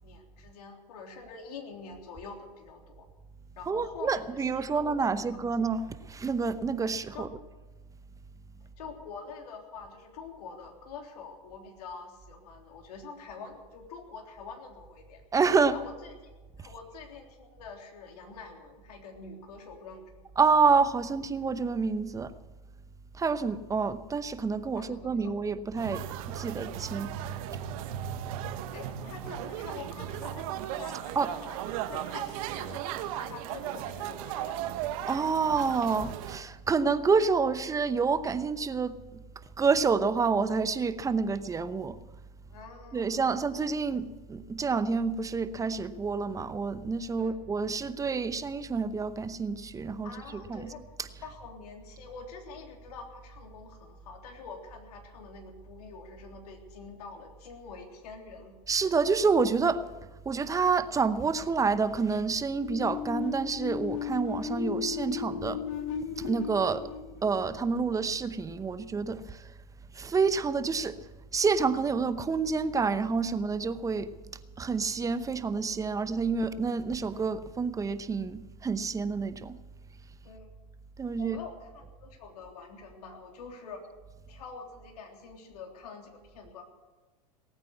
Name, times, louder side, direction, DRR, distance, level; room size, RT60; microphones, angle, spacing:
voice 1, 0.0-3.1 3.6-5.4 7.1-7.3 8.8-15.2 15.7-20.1 24.7-25.5 28.7-34.6 42.5-43.2 47.2-47.4 50.0-50.8 51.2-58.5 80.2-80.6 81.2-83.9 84.3-86.6, left 4 dB, 75° left, 3.4 m, -46 dB
voice 2, 3.7-7.3 15.3-15.7 20.4-22.3 23.2-26.0 26.3-27.1 31.2-31.3 35.1-39.2 39.6-42.0 42.9-50.1 50.5-50.7 58.7-59.8 60.3-65.6 66.2-66.9 67.2-69.4 69.9-71.0 71.3-74.1 74.6-79.6 81.0-81.4, right 5 dB, 15° right, 0.8 m, -28 dB
sound 1, 25.8-36.4, right 11 dB, 60° right, 1.4 m, -36 dB
sound 2, 62.6-68.3, left 8 dB, 55° left, 1.2 m, -36 dB
19.0 x 9.0 x 8.5 m
hypercardioid pair, 110°, 20 cm